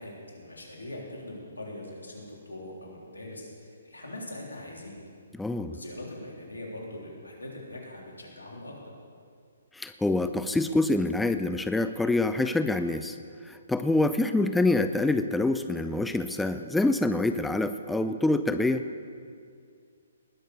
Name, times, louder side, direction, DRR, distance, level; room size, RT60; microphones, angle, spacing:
voice 1, 0.0-5.0 5.7-8.7, left 1 dB, 90° left, -1 dB, 3.3 m, -42 dB
voice 2, 5.4-5.7 9.7-13.2 13.4-18.8, left 2 dB, 5° left, 9 dB, 0.4 m, -26 dB
19.5 x 6.6 x 6.6 m, 2.2 s
figure-of-eight pair, 135°, 0 cm